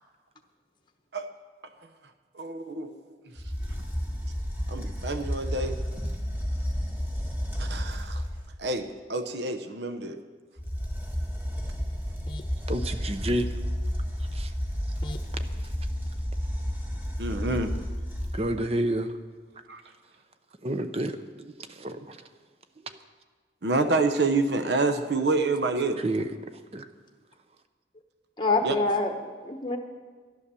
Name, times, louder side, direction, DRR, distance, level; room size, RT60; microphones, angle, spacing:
voice 1, 2.4-2.9 4.7-5.8 7.6-8.2 8.6-10.2 17.2-17.7 19.7-19.8 23.6-26.0 28.6-28.8, right 3 dB, 70° right, 8 dB, 0.8 m, -27 dB
sound 1, 3.4-8.5 10.6-18.7, equal, 10° right, 1.6 m, -31 dB
voice 2, 12.7-13.5 14.3-14.5 18.3-19.2 20.6-22.2 22.8-23.0 26.0-26.3 26.7-26.9, right 1 dB, 35° right, 9 dB, 0.7 m, -30 dB
voice 3, 28.4-29.1 29.4-29.8, left 3 dB, 25° left, 4 dB, 0.9 m, -26 dB
11.5 x 11.0 x 6.9 m, 1.5 s
head